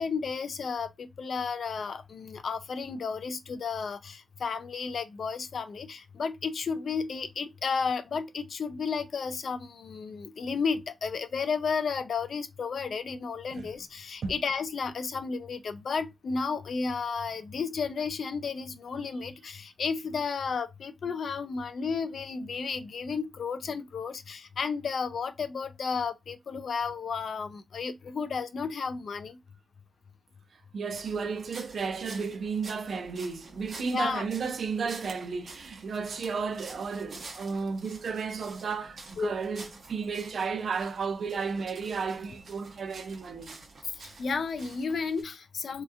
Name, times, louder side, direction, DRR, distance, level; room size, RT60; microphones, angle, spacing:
voice 1, 0.0-29.4 33.9-34.2 39.2-39.3 44.2-45.8, left 5 dB, 75° left, 0.3 m, -33 dB
voice 2, 30.7-43.6, right 5 dB, 90° right, 0.4 m, -33 dB
sound 1, 30.9-45.2, right 3 dB, 70° right, 0.8 m, -49 dB
2.8 x 2.2 x 2.3 m
wide cardioid pair, 155°, 0 cm